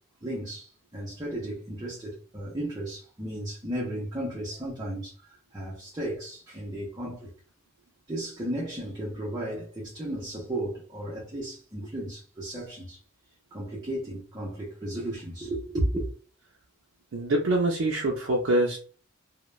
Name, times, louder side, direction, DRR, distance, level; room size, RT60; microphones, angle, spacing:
voice 1, 0.2-7.3 8.1-13.0 13.5-16.1, right 1 dB, 20° right, 0.5 m, -34 dB
voice 2, 17.1-18.8, right 1 dB, 75° right, 0.5 m, -25 dB
2.3 x 2.1 x 3.0 m
head